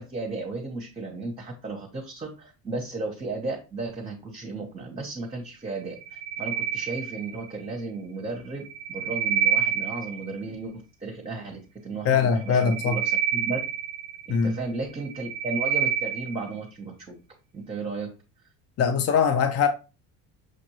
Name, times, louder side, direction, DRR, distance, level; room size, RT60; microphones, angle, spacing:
voice 1, 0.0-13.6 14.3-17.2 17.5-18.1, right 3 dB, 15° right, 1.0 m, -34 dB
sound 1, 5.9-7.6 8.6-10.4 12.4-14.5 15.0-16.5, right 9 dB, 40° right, 0.4 m, -28 dB
voice 2, 12.0-12.9 14.3-14.5 18.8-19.7, left 6 dB, 40° left, 0.6 m, -22 dB
6.3 x 2.5 x 3.0 m
supercardioid pair, 115°, 37 cm